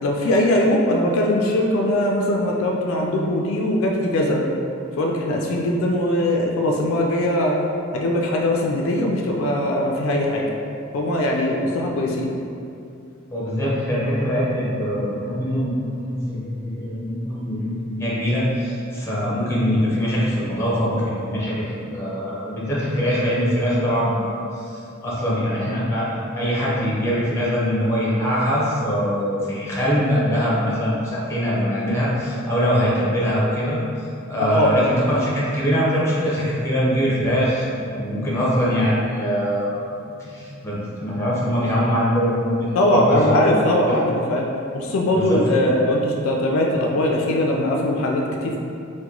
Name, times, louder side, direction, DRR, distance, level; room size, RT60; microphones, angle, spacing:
voice 1, 0.0-4.4 5.0-7.6 7.9-10.4 10.9-12.3 34.4-34.9 42.8-44.5 44.7-48.6, left 1 dB, 75° left, 0 dB, 0.4 m, -21 dB
voice 2, 13.3-15.7 16.0-21.6 21.9-26.1 26.3-33.8 34.3-39.8 40.2-43.2 43.7-44.1 45.1-45.4, equal, 15° left, -7 dB, 0.7 m, -22 dB
2.9 x 2.2 x 3.6 m, 2.5 s
head